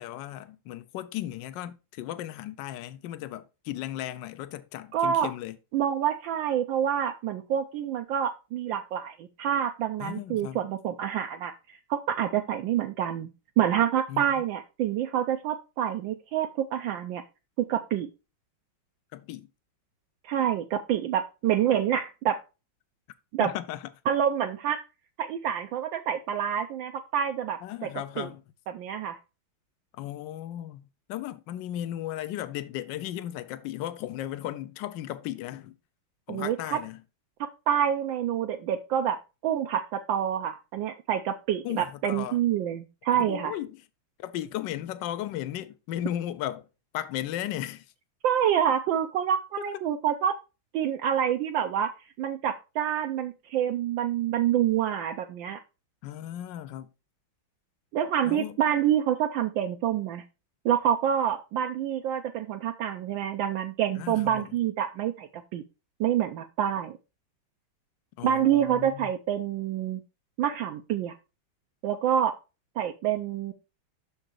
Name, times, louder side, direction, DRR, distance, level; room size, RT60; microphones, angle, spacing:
voice 1, 0.0-5.6 10.0-10.7 14.1-14.4 19.1-19.5 23.4-23.9 27.6-28.4 29.9-35.7 36.3-37.0 41.6-42.4 43.1-43.8 44.2-46.7 46.9-47.9 49.6-49.7 56.0-56.9 58.2-58.6 63.9-64.6 68.2-69.1, left 12 dB, 75° left, 1.2 m, -36 dB
voice 2, 4.9-5.3 5.7-13.3 13.6-17.2 17.6-18.1 20.2-22.4 23.3-23.5 24.1-24.8 25.2-27.9 28.2-28.3 28.7-29.2 36.3-36.8 37.4-39.2 39.4-43.5 48.2-50.3 50.7-51.9 52.2-55.6 57.9-60.2 60.6-65.6 66.0-67.0 68.2-70.0 70.4-71.1 71.8-72.3 72.8-73.5, right 9 dB, 75° right, 1.3 m, -27 dB
6.4 x 5.2 x 4.4 m
omnidirectional pair, 2.2 m